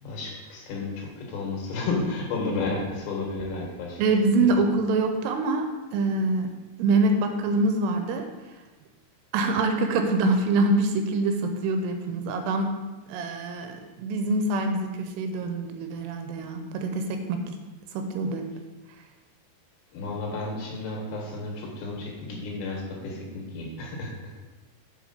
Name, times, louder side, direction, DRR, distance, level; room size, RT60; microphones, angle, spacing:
voice 1, 0.0-4.0 19.9-24.3, left 3 dB, 80° left, -2 dB, 3.8 m, -32 dB
voice 2, 4.0-5.7 5.9-6.5 6.8-8.2 9.3-12.7 13.1-17.5 17.9-18.5, right 2 dB, 80° right, 5 dB, 2.6 m, -25 dB
6.8 x 5.8 x 4.3 m, 1.2 s
omnidirectional pair, 4.9 m